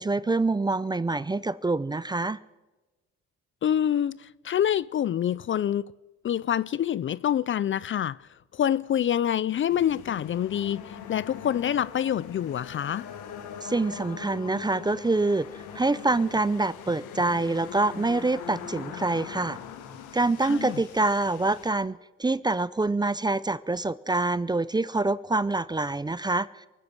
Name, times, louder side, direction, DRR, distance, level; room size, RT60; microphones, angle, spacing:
voice 1, 0.0-2.4 13.6-15.5 15.7-19.6 20.1-26.7, right 2 dB, 15° right, 0.4 m, -26 dB
voice 2, 3.6-5.8 6.2-13.1 20.4-20.8, left 10 dB, 40° left, 0.4 m, -26 dB
sound 1, 9.7-21.7, left 8 dB, 90° left, 1.7 m, -42 dB
23.0 x 10.0 x 6.1 m
cardioid pair, 90°, 30 cm